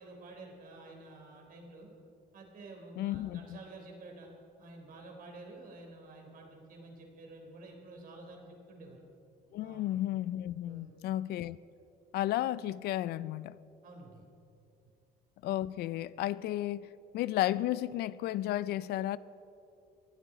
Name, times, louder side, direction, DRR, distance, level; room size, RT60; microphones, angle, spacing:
voice 1, 0.0-1.9 2.3-4.3 4.6-9.0 9.6-10.0 10.6-10.9 13.8-14.2, right 2 dB, 55° right, 3.6 m, -50 dB
voice 2, 3.0-3.6 9.5-11.6 12.1-13.6 15.4-16.9 17.1-19.2, left 14 dB, 75° left, 0.4 m, -33 dB
18.5 x 12.0 x 5.0 m
cardioid pair, 110°, 17 cm